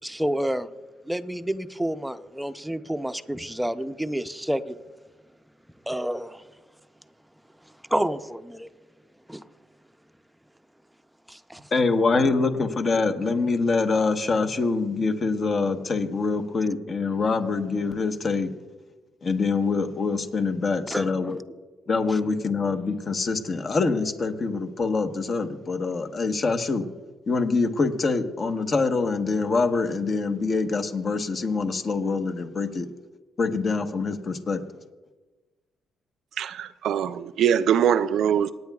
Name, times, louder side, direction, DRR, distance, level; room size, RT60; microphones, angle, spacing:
voice 1, 0.0-0.7 1.0-4.8 5.9-6.4 7.9-8.7 9.3-9.4 11.3-11.7 20.9-21.3 22.1-22.2, right 1 dB, 5° right, 0.6 m, -29 dB
voice 2, 11.7-18.5 19.2-21.4 21.9-26.8 27.3-32.9 33.4-34.6, left 4 dB, 45° left, 1.1 m, -25 dB
voice 3, 36.4-38.5, right 9 dB, 75° right, 0.5 m, -22 dB
27.0 x 9.4 x 2.4 m
cardioid pair, 90°, 0 cm